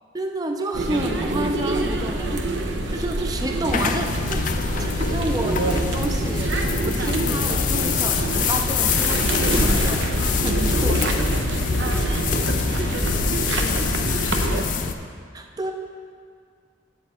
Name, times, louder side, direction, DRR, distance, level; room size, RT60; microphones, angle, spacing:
voice 1, 0.1-4.5 4.8-6.5 6.8-10.1 10.4-11.0 15.3-15.7, right 1 dB, 20° right, 4 dB, 0.4 m, -30 dB
sound 1, 0.7-14.6, right 2 dB, 80° right, 0.7 m, -25 dB
sound 2, 3.7-14.9, left 5 dB, 45° left, 0.4 m, -25 dB
voice 2, 10.6-12.3 12.7-14.6, left 2 dB, 80° left, 2 dB, 1.0 m, -39 dB
8.6 x 8.0 x 4.3 m, 2.1 s
head